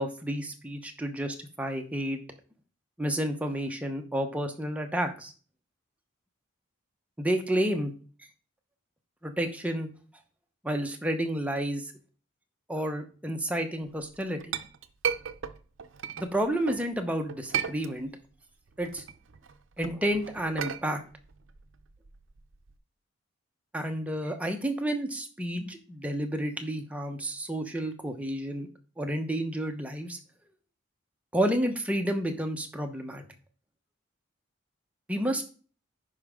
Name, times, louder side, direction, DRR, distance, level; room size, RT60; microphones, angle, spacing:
voice 1, 0.0-2.2 3.0-5.3 7.2-7.9 9.2-9.9 10.6-11.9 12.7-14.5 16.2-18.1 18.8-19.0 19.8-21.0 23.7-28.7 29.0-30.2 31.3-33.2 35.1-35.4, right 1 dB, 5° right, 4 dB, 0.8 m, -30 dB
Chink clink, 14.0-16.9 17.3-18.3 18.7-22.8, right 8 dB, 65° right, 0.6 m, -35 dB
10.5 x 4.9 x 3.6 m, 0.40 s
head